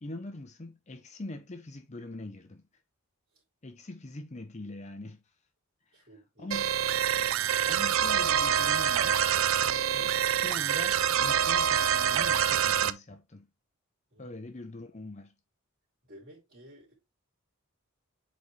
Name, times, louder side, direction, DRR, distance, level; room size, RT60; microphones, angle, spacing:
voice 1, 0.0-2.6 3.6-5.2 6.4-6.8 7.6-9.2 9.6-13.5 14.2-15.3, left 2 dB, 30° left, 0.6 m, -43 dB
voice 2, 5.9-6.6 14.1-14.4 16.0-16.9, equal, 45° right, 2.8 m, -54 dB
sound 1, 6.5-12.9, right 9 dB, 65° right, 0.4 m, -26 dB
7.9 x 4.0 x 3.2 m
head